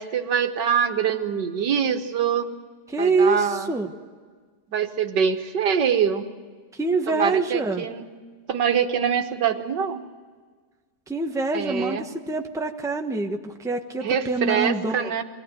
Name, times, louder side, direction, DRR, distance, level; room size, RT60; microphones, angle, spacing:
voice 1, 0.0-2.5 3.0-3.7 4.7-6.3 7.1-8.0 8.5-10.0 11.5-12.1 14.0-15.2, right 7 dB, 90° right, 7 dB, 1.9 m, -24 dB
voice 2, 2.9-3.9 6.7-7.8 11.1-15.1, right 3 dB, ahead, 4 dB, 1.0 m, -25 dB
23.0 x 17.5 x 9.1 m, 1.5 s
omnidirectional pair, 1.8 m